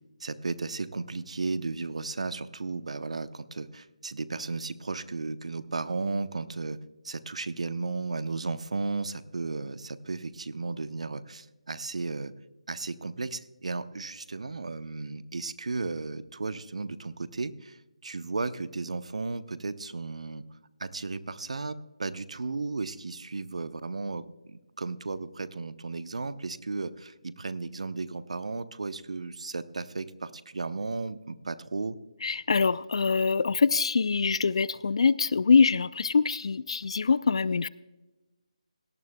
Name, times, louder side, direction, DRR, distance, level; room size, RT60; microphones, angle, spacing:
voice 1, 0.2-6.8 7.0-12.3 12.7-20.4 20.8-32.0, right 3 dB, 70° right, 14 dB, 0.7 m, -34 dB
voice 2, 32.2-37.7, left 5 dB, 55° left, 19 dB, 0.4 m, -24 dB
18.0 x 12.5 x 2.2 m, 1.1 s
figure-of-eight pair, 160°, 4 cm